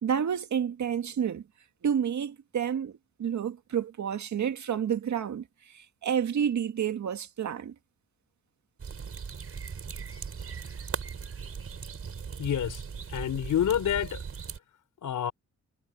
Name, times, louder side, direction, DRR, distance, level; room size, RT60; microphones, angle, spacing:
voice 1, 0.0-1.4 1.8-7.7, right 8 dB, 70° right, 2.0 m, -30 dB
sound 1, 8.8-14.6, right 6 dB, 50° right, 5.8 m, -38 dB
voice 2, 12.4-12.8 13.1-14.2 15.0-15.3, left 10 dB, 85° left, 4.8 m, -28 dB
wide cardioid pair, 125°, 30 cm